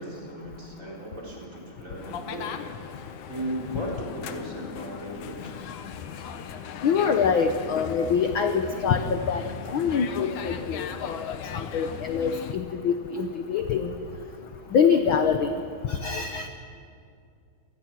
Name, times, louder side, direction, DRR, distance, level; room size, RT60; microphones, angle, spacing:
voice 1, 0.0-2.8 3.3-5.6, equal, 25° right, -2 dB, 4.4 m, -36 dB
sound 1, 2.0-12.5, left 8 dB, 90° left, 2.6 m, -38 dB
voice 2, 6.8-9.4 9.7-13.9 14.7-15.5 15.9-16.5, left 6 dB, 65° left, 6 dB, 1.3 m, -25 dB
26.5 x 20.0 x 6.1 m, 2.3 s
omnidirectional pair, 3.4 m